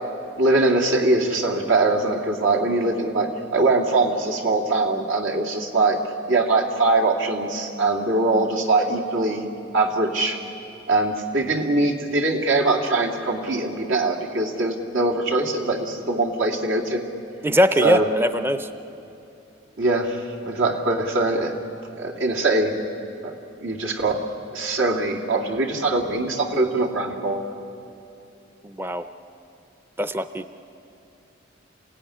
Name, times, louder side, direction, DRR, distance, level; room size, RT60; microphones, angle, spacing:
voice 1, 0.4-6.0 6.3-9.5 9.7-10.4 10.9-17.0 17.8-18.1 19.8-21.6 22.0-22.8 23.2-23.3 23.6-24.2 24.5-27.5, right 2 dB, 85° right, 0 dB, 2.5 m, -22 dB
voice 2, 17.4-18.7 28.6-29.0 30.0-30.5, equal, 10° right, 10 dB, 0.5 m, -21 dB
27.5 x 16.5 x 10.0 m, 2.7 s
head